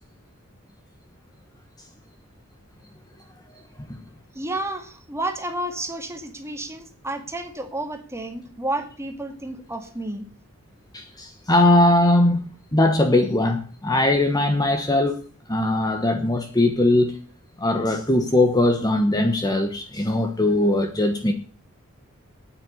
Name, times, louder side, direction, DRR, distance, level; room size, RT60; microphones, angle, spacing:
voice 1, 4.3-10.3, right 1 dB, 15° right, 5 dB, 2.0 m, -31 dB
voice 2, 10.9-12.4 12.7-15.2 15.5-17.2 17.6-21.3, left 1 dB, 20° left, 5 dB, 1.2 m, -20 dB
9.2 x 8.7 x 9.6 m, 0.41 s
head